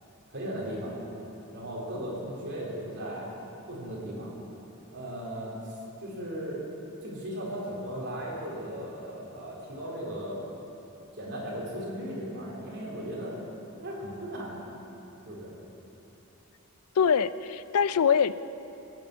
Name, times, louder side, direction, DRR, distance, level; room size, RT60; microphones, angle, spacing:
voice 1, 0.3-1.0 1.5-3.3 3.7-4.3 4.9-6.6 7.0-10.4 11.2-13.4 13.8-14.7 15.3-15.5, equal, 50° right, -5 dB, 3.9 m, -37 dB
voice 2, 17.0-18.5, left 7 dB, 80° left, 15 dB, 0.4 m, -24 dB
17.5 x 8.0 x 8.4 m, 2.9 s
head